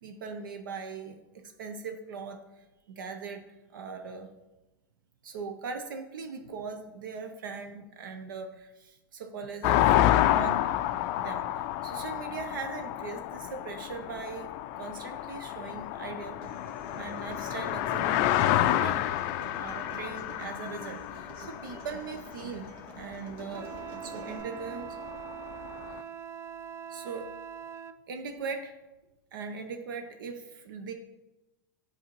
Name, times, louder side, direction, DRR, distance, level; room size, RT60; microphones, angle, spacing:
voice 1, 0.0-3.4 3.7-4.3 5.2-10.0 10.3-10.6 11.2-14.5 14.8-16.4 17.0-19.0 19.5-23.7 24.0-25.0 25.9-26.0 26.9-27.3 28.1-28.8 29.3-30.9, right 5 dB, 75° right, 6 dB, 0.6 m, -40 dB
sound 1, 9.6-22.7 23.5-23.6 23.7-26.0, left 13 dB, 50° left, 0.4 m, -29 dB
Human voice / Acoustic guitar, 16.4-24.4, right 2 dB, 50° right, 1.9 m, -47 dB
Wind instrument woodwind instrument, 23.5-28.0, right 9 dB, 25° right, 0.3 m, -42 dB
9.0 x 4.0 x 3.0 m, 1.0 s
hypercardioid pair, 100°, 11 cm